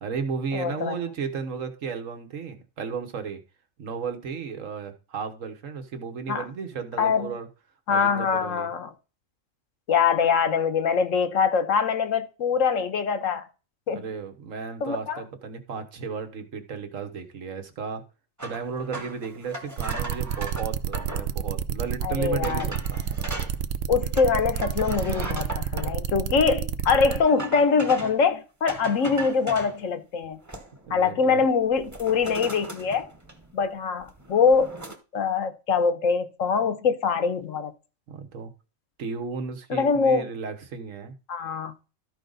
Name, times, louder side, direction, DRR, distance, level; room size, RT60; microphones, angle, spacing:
voice 1, 0.0-3.4 3.8-7.5 7.9-8.7 13.9-18.0 18.4-23.0 30.9-31.4 38.1-38.5 39.0-41.1, right 5 dB, 75° right, 1.6 m, -34 dB
voice 2, 0.5-1.0 6.3-6.5 7.0-7.3 7.9-8.9 9.9-13.4 13.9-14.0 14.8-15.2 22.0-22.7 23.9-30.4 30.9-33.1 33.5-34.7 35.1-37.7 39.7-40.3 41.3-41.7, left 5 dB, 80° left, 1.3 m, -23 dB
sound 1, 18.4-21.3 21.9-22.0 22.4-23.6 24.2-25.9 27.1-28.2 28.7-29.8 30.2-30.9 31.2-31.4 31.8-33.7 34.0-35.0, right 2 dB, 15° right, 1.1 m, -38 dB
sound 2, 19.8-27.2, right 8 dB, 60° right, 0.8 m, -29 dB
13.0 x 5.1 x 3.9 m
omnidirectional pair, 1.4 m